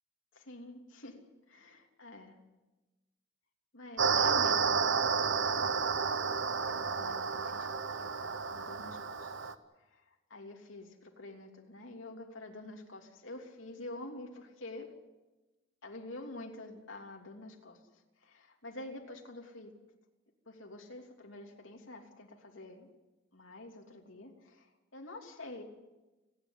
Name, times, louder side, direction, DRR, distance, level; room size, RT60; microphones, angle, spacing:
voice 1, 0.3-1.2 1.5-2.4 3.7-5.9 6.3-9.5 9.8-14.9 15.8-19.7 20.5-22.9 23.3-25.6, left 2 dB, 80° left, 3 dB, 3.1 m, -48 dB
sound 1, 4.0-9.5, right 5 dB, 75° right, 1.1 m, -31 dB
30.0 x 10.5 x 9.6 m, 1.1 s
head